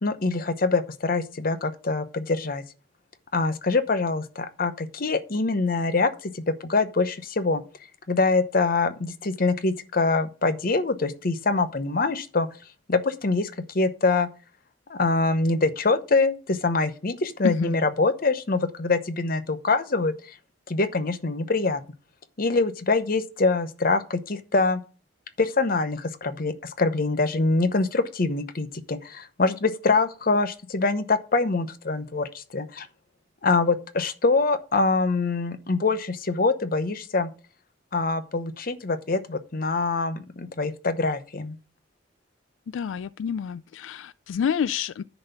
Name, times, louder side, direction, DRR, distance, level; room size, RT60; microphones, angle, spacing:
voice 1, 0.0-2.6 3.3-7.6 8.1-12.5 12.9-14.3 14.9-20.4 20.7-21.8 22.4-24.8 25.4-32.9 33.4-37.3 37.9-41.6, left 3 dB, 50° left, 0.8 m, -24 dB
voice 2, 17.4-17.8 42.7-45.0, left 7 dB, 90° left, 0.3 m, -28 dB
10.5 x 4.1 x 6.7 m
head